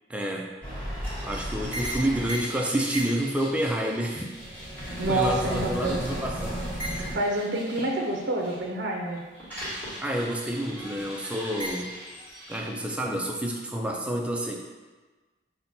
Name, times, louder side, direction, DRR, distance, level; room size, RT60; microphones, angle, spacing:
voice 1, 0.1-0.5 1.2-4.3 5.1-6.6 10.0-11.9 12.5-14.6, right 1 dB, 5° right, 0 dB, 0.4 m, -29 dB
sound 1, 0.6-8.6 8.9-12.7, equal, 10° left, 1.4 m, -35 dB
voice 2, 5.0-6.0 7.1-9.2, right 1 dB, 65° right, 0 dB, 0.6 m, -28 dB
5.6 x 2.2 x 4.1 m, 1.3 s
head